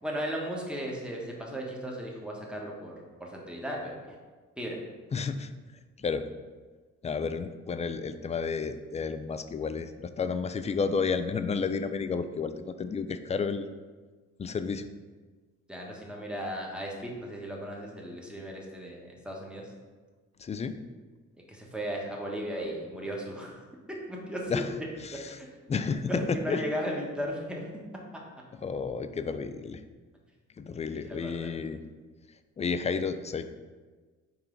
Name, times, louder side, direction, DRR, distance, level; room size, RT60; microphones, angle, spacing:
voice 1, 0.0-2.9 3.2-4.2 4.6-4.8 15.7-19.7 21.5-24.6 25.1-25.5 26.1-27.6 30.8-31.5, equal, 5° right, -2 dB, 1.3 m, -36 dB
voice 2, 5.1-5.5 6.0-6.2 7.0-13.6 14.4-14.9 20.4-20.8 24.5-24.7 25.1-25.2 25.7-26.6 28.6-29.8 30.6-31.8 32.6-33.5, left 5 dB, 25° left, 10 dB, 0.4 m, -31 dB
5.5 x 4.4 x 3.9 m, 1.4 s
cardioid pair, 90°, 30 cm